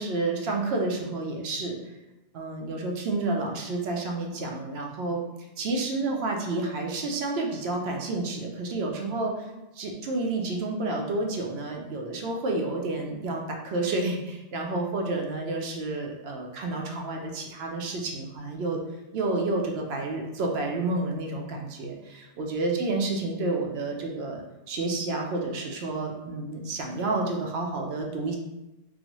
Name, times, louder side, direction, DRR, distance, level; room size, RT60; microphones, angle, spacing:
voice 1, 0.0-1.8 2.3-5.2 5.6-9.5 9.7-18.8 19.1-28.4, right 2 dB, 70° right, 1 dB, 0.8 m, -30 dB
3.8 x 2.1 x 2.9 m, 1.0 s
omnidirectional pair, 1.1 m